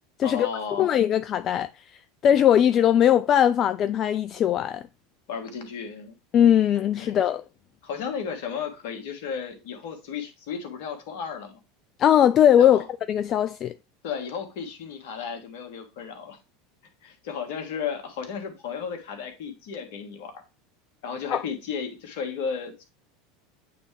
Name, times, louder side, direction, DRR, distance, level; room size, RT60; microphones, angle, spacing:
voice 1, 0.2-0.9 5.3-6.2 7.0-7.2 7.8-11.6 12.6-12.9 14.0-16.4 17.0-20.3 21.0-22.8, left 6 dB, 65° left, 1.6 m, -34 dB
voice 2, 0.8-1.7 2.2-4.8 6.3-7.4 12.0-12.8 13.1-13.7 21.3-21.4, left 10 dB, 40° left, 0.3 m, -20 dB
8.7 x 3.4 x 3.3 m
hypercardioid pair, 80°, 0 cm